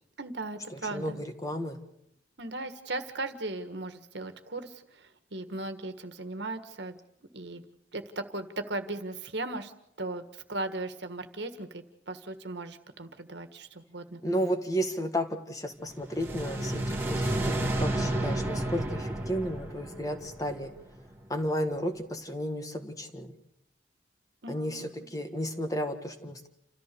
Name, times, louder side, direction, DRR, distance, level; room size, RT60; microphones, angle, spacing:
voice 1, 0.2-1.2 2.4-4.7 5.3-7.0 7.3-7.6 7.9-9.7 10.0-14.2 24.4-24.9, right 2 dB, 70° right, 8 dB, 1.6 m, -37 dB
voice 2, 0.7-1.8 14.2-20.7 21.3-23.3 24.5-26.5, equal, 20° left, 6 dB, 1.5 m, -33 dB
sound 1, 16.0-21.1, right 1 dB, 15° right, 2.0 m, -31 dB
29.0 x 14.0 x 6.9 m, 0.78 s
head